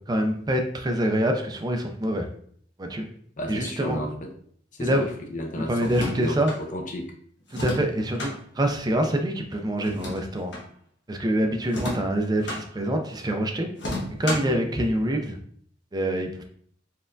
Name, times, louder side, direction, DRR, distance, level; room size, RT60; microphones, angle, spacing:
voice 1, 0.1-2.3 2.8-3.1 3.5-4.0 4.8-5.1 5.6-6.5 7.5-10.5 11.1-13.7 14.2-15.4 15.9-16.4, right 1 dB, 20° right, 4 dB, 0.5 m, -25 dB
voice 2, 3.4-4.3 4.7-7.1 14.4-14.6, left 1 dB, 45° left, 2 dB, 0.7 m, -33 dB
sound 1, 5.8-6.6 7.5-8.3 9.8-10.7 11.7-12.6 13.8-14.6, left 1 dB, 70° left, 1.2 m, -32 dB
4.3 x 3.4 x 2.6 m, 0.62 s
head